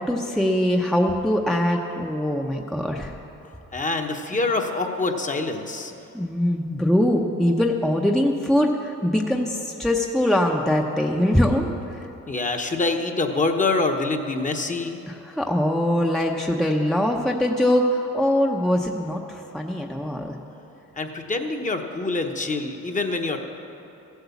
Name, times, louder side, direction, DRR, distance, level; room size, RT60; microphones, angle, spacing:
voice 1, 0.0-3.1 6.1-12.1 15.1-20.3, left 1 dB, ahead, 1 dB, 0.8 m, -22 dB
voice 2, 3.7-5.9 12.3-15.0 21.0-23.4, left 3 dB, 25° left, 4 dB, 1.1 m, -25 dB
14.5 x 8.1 x 7.1 m, 2.8 s
cardioid pair, 90°, 30 cm